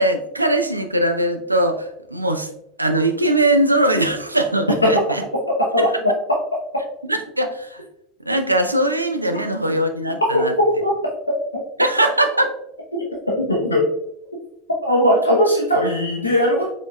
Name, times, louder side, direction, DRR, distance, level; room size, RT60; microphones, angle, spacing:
voice 1, 0.0-2.5 2.8-5.2 5.8-5.9 7.0-7.8 8.3-10.5 11.8-12.5, right 1 dB, 85° right, 7 dB, 0.4 m, -20 dB
voice 2, 10.3-10.9 11.3-11.4 13.3-13.8 14.8-16.7, equal, 85° left, -2 dB, 0.6 m, -18 dB
5.0 x 3.7 x 2.2 m, 0.76 s
figure-of-eight pair, 75°, 0 cm